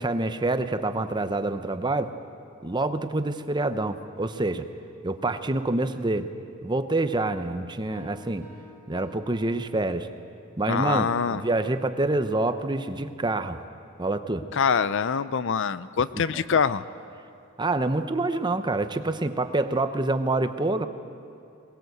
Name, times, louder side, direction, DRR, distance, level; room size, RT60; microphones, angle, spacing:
voice 1, 0.0-2.1 2.6-4.7 5.0-6.3 6.6-8.5 8.9-10.1 10.6-13.6 14.0-14.4 16.1-16.4 17.6-20.9, right 2 dB, 20° right, 10 dB, 0.8 m, -27 dB
Piano, 7.9-10.3, left 2 dB, 10° left, 3.5 m, -52 dB
voice 2, 10.7-11.4 14.5-16.8, left 6 dB, 60° left, 15 dB, 0.5 m, -24 dB
21.5 x 19.5 x 8.0 m, 2.5 s
head